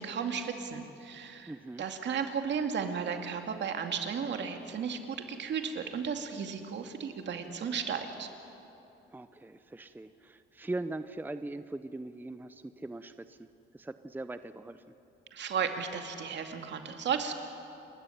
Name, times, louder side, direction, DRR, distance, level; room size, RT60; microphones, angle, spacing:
voice 1, 0.0-1.5 1.8-8.3 15.3-17.3, right 6 dB, 65° right, 5 dB, 2.4 m, -34 dB
voice 2, 1.5-1.8 9.1-13.5 13.7-14.8, right 2 dB, 10° right, 11 dB, 0.7 m, -40 dB
29.5 x 13.5 x 9.9 m, 2.9 s
cardioid pair, 90°, 20 cm